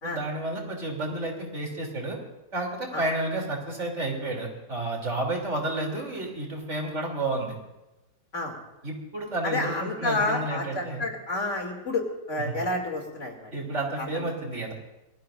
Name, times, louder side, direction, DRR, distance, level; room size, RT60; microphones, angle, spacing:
voice 1, 0.0-2.2 2.5-7.5 8.8-11.0 12.5-12.6 13.5-14.7, right 2 dB, 50° right, 0 dB, 3.5 m, -31 dB
voice 2, 9.4-13.5, left 2 dB, 50° left, 1 dB, 3.0 m, -29 dB
26.5 x 19.0 x 2.5 m, 1.0 s
omnidirectional pair, 1.6 m